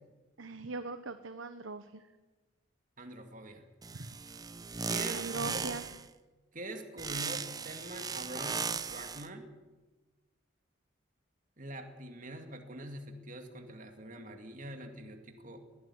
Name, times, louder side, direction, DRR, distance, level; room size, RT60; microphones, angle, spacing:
voice 1, 0.4-2.0 3.9-4.1 5.1-5.9, right 3 dB, 75° right, 10 dB, 1.0 m, -40 dB
voice 2, 3.0-3.7 4.8-5.7 6.5-8.6 8.9-9.5 11.6-15.6, right 1 dB, 40° right, 5 dB, 2.3 m, -44 dB
sound 1, 3.8-6.1 7.0-9.3, right 5 dB, 20° right, 0.7 m, -37 dB
21.0 x 14.0 x 9.5 m, 1.2 s
head